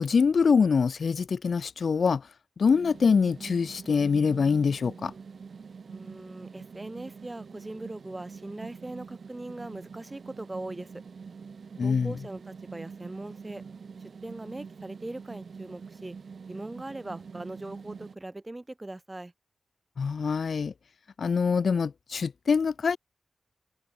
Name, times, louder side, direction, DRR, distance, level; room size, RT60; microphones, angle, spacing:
voice 1, 0.0-2.2 2.6-5.1 11.8-12.1 20.0-20.7 21.2-23.0, left 5 dB, 60° left, 0.5 m, -24 dB
sound 1, 2.7-18.2, right 5 dB, 60° right, 5.0 m, -45 dB
voice 2, 5.8-11.0 11.8-13.6 14.2-16.2 16.5-19.3, right 2 dB, 15° right, 0.8 m, -40 dB
wide cardioid pair, 150°, 0 cm